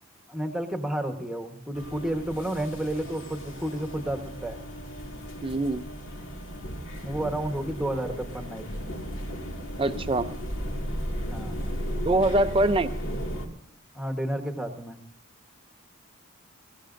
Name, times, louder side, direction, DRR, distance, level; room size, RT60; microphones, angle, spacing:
voice 1, 0.3-4.6 7.0-8.6 11.2-11.6 13.9-15.0, right 1 dB, ahead, 3 dB, 1.2 m, -31 dB
sound 1, 1.7-13.5, equal, 65° left, 2.1 m, -35 dB
voice 2, 5.4-5.9 9.8-10.3 12.0-12.9, right 1 dB, 25° right, 10 dB, 0.5 m, -23 dB
21.5 x 16.5 x 2.6 m, 0.70 s
head